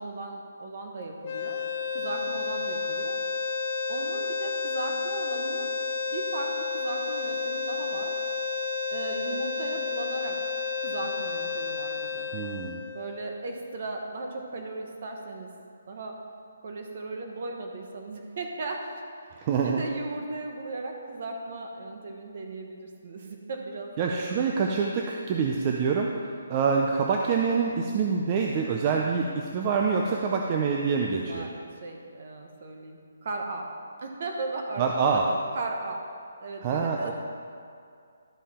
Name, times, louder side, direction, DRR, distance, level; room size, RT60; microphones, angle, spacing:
voice 1, 0.0-1.6 1.9-3.2 3.9-5.7 6.1-8.2 8.9-10.4 10.8-12.3 12.9-15.5 15.9-16.2 16.6-19.0 19.6-24.3 31.2-33.7 34.0-36.0 36.4-37.1, right 2 dB, 45° right, 2 dB, 1.1 m, -36 dB
sound 1, 1.2-13.5, left 4 dB, 30° left, 0.6 m, -31 dB
voice 2, 12.3-12.8 19.3-19.8 24.0-31.5 34.8-35.3 36.6-37.1, right 5 dB, 25° right, 0 dB, 0.5 m, -26 dB
12.0 x 5.5 x 4.3 m, 2.3 s
hypercardioid pair, 170°, 0 cm